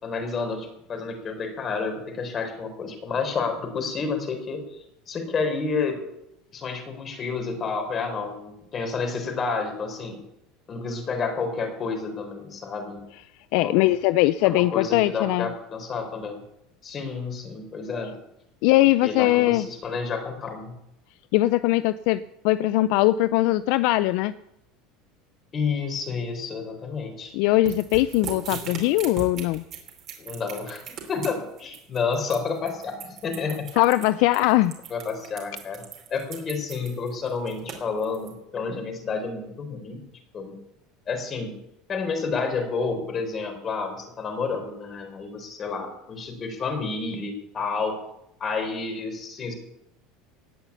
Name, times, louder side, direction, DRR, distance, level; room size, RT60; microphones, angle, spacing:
voice 1, 0.0-6.0 6.5-10.2 10.7-13.0 13.5-13.9 14.4-16.4 16.8-18.2 19.0-20.8 25.5-27.3 30.2-30.8 31.1-33.7 34.9-35.8 36.1-40.0 40.3-40.5 41.1-41.5 41.9-48.0 48.4-49.6, left 4 dB, 30° left, 5 dB, 4.0 m, -30 dB
voice 2, 13.5-15.5 18.6-19.7 21.3-24.3 27.3-29.6 33.8-34.7, left 17 dB, 70° left, 15 dB, 0.4 m, -21 dB
sound 1, 27.7-38.3, right 7 dB, 45° right, 4.3 m, -39 dB
17.0 x 5.8 x 9.7 m, 0.82 s
supercardioid pair, 120°, 0 cm